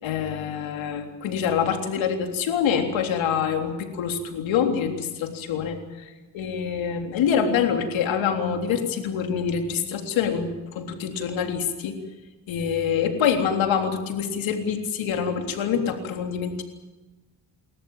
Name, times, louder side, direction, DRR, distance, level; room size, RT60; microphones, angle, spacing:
voice 1, 0.0-5.8 6.3-12.0 12.5-16.6, left 7 dB, 90° left, 4 dB, 3.6 m, -25 dB
29.0 x 14.0 x 9.0 m, 1.2 s
cardioid pair, 95°, 45 cm